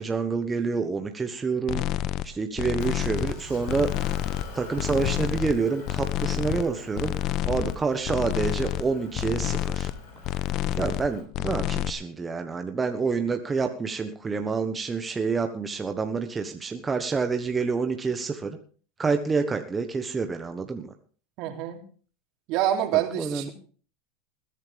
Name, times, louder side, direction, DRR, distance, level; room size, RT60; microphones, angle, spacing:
voice 1, 0.0-1.8 2.2-3.9 4.5-9.9 10.7-18.6 19.0-20.9 23.2-23.5, right 4 dB, 20° right, 6 dB, 1.3 m, -28 dB
sound 1, 1.7-2.3 2.6-3.4 3.7-4.5 4.8-5.6 5.9-6.7 7.0-7.8 8.0-8.8 9.1-10.0 10.2-11.1 11.3-11.9, left 13 dB, 50° left, 0.9 m, -28 dB
Motor vehicle (road) / Engine, 2.8-11.2, left 3 dB, 70° left, 6.5 m, -45 dB
voice 2, 21.4-21.8 22.5-23.5, right 12 dB, 60° right, 4 dB, 3.0 m, -26 dB
20.5 x 10.5 x 3.5 m, 0.40 s
hypercardioid pair, 100°, 0 cm